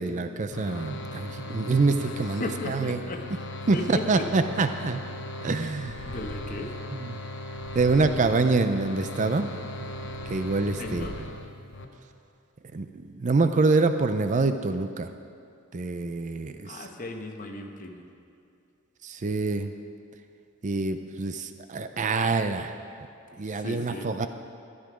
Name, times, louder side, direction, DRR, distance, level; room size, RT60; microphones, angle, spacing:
voice 1, 0.0-3.0 3.7-5.0 5.4-6.1 7.7-9.5 10.3-11.1 12.7-12.9 13.2-15.1 15.7-16.8 19.0-19.7 20.6-22.7 23.4-24.3, right 3 dB, 35° right, 9 dB, 0.4 m, -25 dB
sound 1, 0.5-11.9, left 1 dB, 60° left, 0.9 m, -38 dB
voice 2, 2.0-3.3 3.7-4.3 5.4-6.8 10.8-11.3 16.6-18.1 23.5-24.1, left 1 dB, 40° left, 3 dB, 1.0 m, -37 dB
Purr, 5.8-6.8 7.5-8.6 9.3-11.4, equal, 10° right, 2.2 m, -44 dB
12.0 x 11.5 x 4.9 m, 2.4 s
head